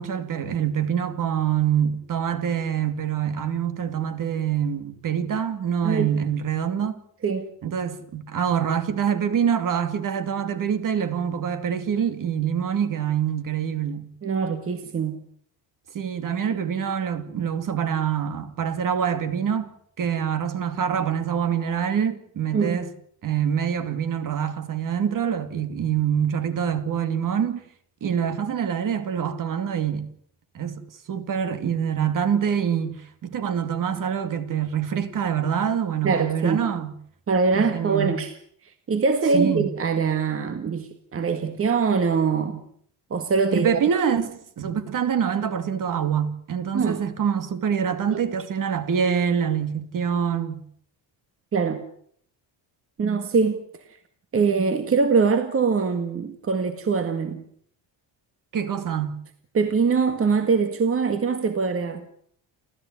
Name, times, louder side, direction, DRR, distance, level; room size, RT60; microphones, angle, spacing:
voice 1, 0.0-7.0 7.6-14.1 15.9-19.7 20.0-22.9 23.2-27.6 28.0-30.0 30.5-30.8 31.1-36.9 37.5-38.2 39.3-39.7 43.5-50.6 58.5-59.2, right 8 dB, 45° right, 2.6 m, -25 dB
voice 2, 14.2-15.2 22.5-22.8 36.0-36.6 37.3-38.3 38.9-42.6 43.1-43.8 46.7-47.0 48.1-48.2 51.5-51.8 53.0-53.6 54.3-57.4 59.5-62.1, right 5 dB, 30° right, 1.8 m, -23 dB
29.5 x 14.0 x 9.5 m
cardioid pair, 170°, 43 cm